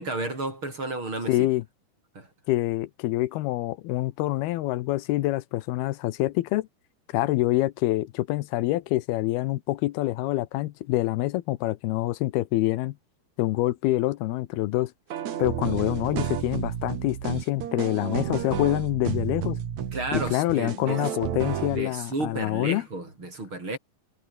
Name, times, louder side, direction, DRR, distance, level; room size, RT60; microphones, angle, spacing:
voice 1, 0.0-1.5 2.1-2.3 19.9-21.0 21.7-23.8, right 2 dB, 30° right, 8.2 m, -32 dB
voice 2, 1.3-1.6 2.5-6.7 7.1-13.0 13.4-14.9 15.4-19.6 20.1-22.8, left 17 dB, 85° left, 2.8 m, -26 dB
sound 1, 15.1-21.8, right 9 dB, 55° right, 2.8 m, -31 dB
omnidirectional pair, 4.4 m